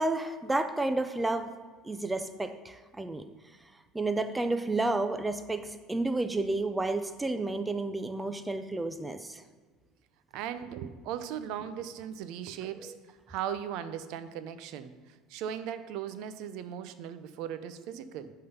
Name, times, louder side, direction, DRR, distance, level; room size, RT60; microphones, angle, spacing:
voice 1, 0.0-1.5 1.8-3.2 3.9-9.4 12.8-12.9, right 2 dB, 10° right, 9 dB, 0.3 m, -31 dB
voice 2, 10.3-18.3, right 9 dB, 60° right, 12 dB, 0.6 m, -38 dB
11.0 x 3.8 x 5.6 m, 1.4 s
cardioid pair, 150°, 0 cm